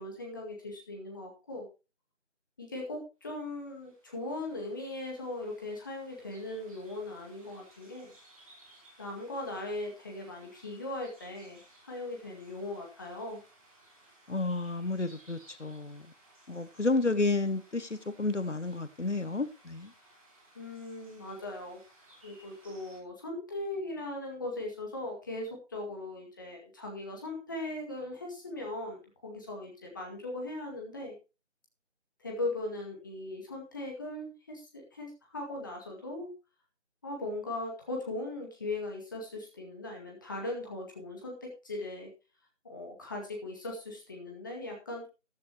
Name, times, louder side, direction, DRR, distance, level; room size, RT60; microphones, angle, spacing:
voice 1, 0.0-1.7 2.6-8.1 9.0-13.4 20.6-21.8 22.2-31.1 32.2-36.3 37.0-42.1 42.6-45.1, left 2 dB, 15° left, 0 dB, 2.0 m, -39 dB
sound 1, 3.5-23.0, right 1 dB, 30° right, 5.2 m, -60 dB
voice 2, 14.3-16.0 16.5-19.9, left 3 dB, 70° left, 13 dB, 1.3 m, -31 dB
14.0 x 11.0 x 3.0 m, 0.29 s
figure-of-eight pair, 165°, 37 cm